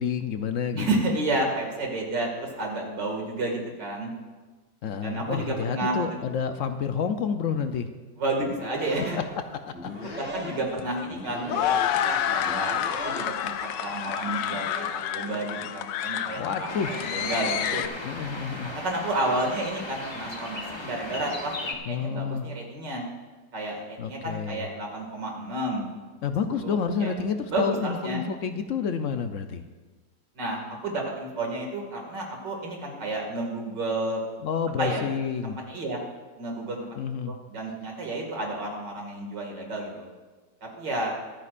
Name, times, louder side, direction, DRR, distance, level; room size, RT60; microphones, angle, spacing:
voice 1, 0.0-0.9 4.8-7.9 9.8-10.3 16.4-16.9 18.0-18.7 21.8-22.5 24.0-24.7 26.2-29.6 34.4-35.6 37.0-37.4, left 6 dB, 65° left, 8 dB, 0.8 m, -29 dB
voice 2, 0.7-4.1 5.0-6.2 8.2-9.2 10.0-11.7 12.0-12.8 13.0-17.9 18.6-23.0 23.5-25.9 26.5-27.1 27.5-28.2 30.4-34.2 34.8-35.1 35.4-36.0 36.4-36.9 37.2-40.1 40.6-41.1, right 2 dB, 75° right, 0 dB, 2.8 m, -31 dB
sound 1, 8.4-13.6, equal, 10° right, 0.7 m, -39 dB
sound 2, 9.9-17.9, left 10 dB, 85° left, 1.3 m, -29 dB
sound 3, 16.7-21.7, left 2 dB, 20° left, 0.7 m, -36 dB
24.0 x 9.6 x 2.5 m, 1.3 s
omnidirectional pair, 1.9 m